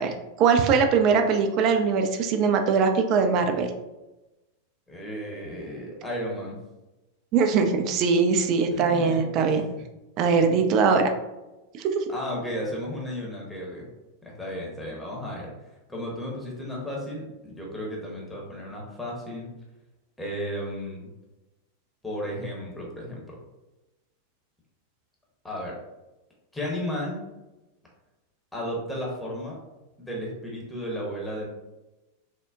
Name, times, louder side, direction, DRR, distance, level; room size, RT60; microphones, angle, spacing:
voice 1, 0.0-3.7 7.3-9.6 10.2-11.1 11.7-12.0, right 5 dB, 40° right, 5 dB, 0.3 m, -21 dB
voice 2, 4.9-6.6 8.7-9.8 12.1-13.9 14.2-15.5 15.9-19.5 20.2-21.1 22.0-23.4 25.4-25.8 26.5-27.2 28.5-29.6 30.0-31.5, equal, 5° left, -3 dB, 0.8 m, -34 dB
3.4 x 2.1 x 2.4 m, 1.0 s
figure-of-eight pair, 90°, 0 cm